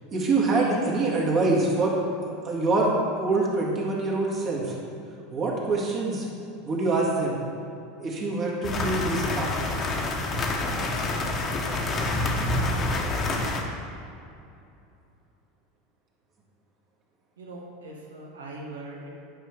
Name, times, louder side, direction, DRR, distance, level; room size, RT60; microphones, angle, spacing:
voice 1, 0.1-2.0 2.4-4.7 5.3-6.3 6.7-7.4 8.0-9.5, right 3 dB, 35° right, -3 dB, 1.8 m, -25 dB
sound 1, 8.6-13.6, left 2 dB, 35° left, 1.1 m, -27 dB
voice 2, 17.4-19.1, right 2 dB, 75° right, -1 dB, 1.2 m, -41 dB
9.9 x 5.6 x 3.3 m, 2.7 s
figure-of-eight pair, 80°, 0 cm